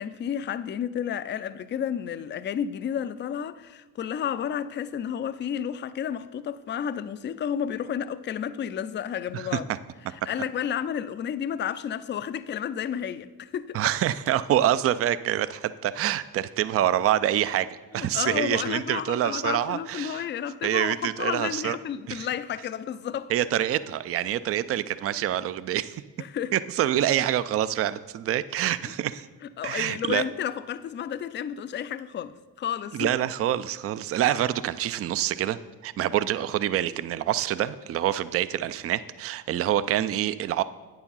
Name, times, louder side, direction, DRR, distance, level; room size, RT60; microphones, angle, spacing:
voice 1, 0.0-9.7 10.3-13.8 18.0-23.3 26.2-26.5 28.9-29.0 29.6-33.1, left 9 dB, 30° left, 0.4 m, -31 dB
voice 2, 13.7-17.7 17.9-20.3 20.6-21.8 22.1-22.3 23.3-26.0 26.5-29.3 29.6-30.2 32.9-35.6 35.8-40.6, right 12 dB, 35° right, 0.4 m, -26 dB
8.7 x 4.8 x 5.5 m
hypercardioid pair, 50°, 41 cm